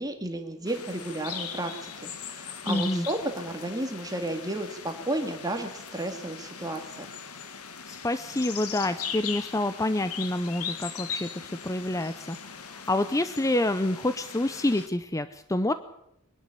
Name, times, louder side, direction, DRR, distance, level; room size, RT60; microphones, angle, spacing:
voice 1, 0.0-7.2, right 1 dB, 15° right, 4 dB, 2.1 m, -33 dB
sound 1, 0.6-14.9, left 7 dB, 90° left, 1.8 m, -39 dB
voice 2, 2.7-3.1 7.9-15.7, left 1 dB, 15° left, 11 dB, 0.7 m, -28 dB
23.0 x 12.0 x 9.9 m, 0.76 s
head